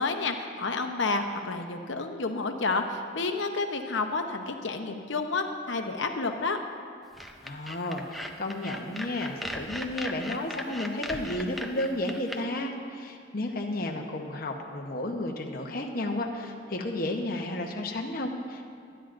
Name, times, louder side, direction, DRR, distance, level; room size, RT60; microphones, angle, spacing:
voice 1, 0.0-6.6, left 3 dB, 75° left, 5 dB, 0.9 m, -30 dB
sound 1, 7.1-12.4, equal, ahead, 0.5 m, -38 dB
voice 2, 7.4-18.6, left 1 dB, 50° left, 1 dB, 1.0 m, -32 dB
23.0 x 10.0 x 2.6 m, 2.3 s
head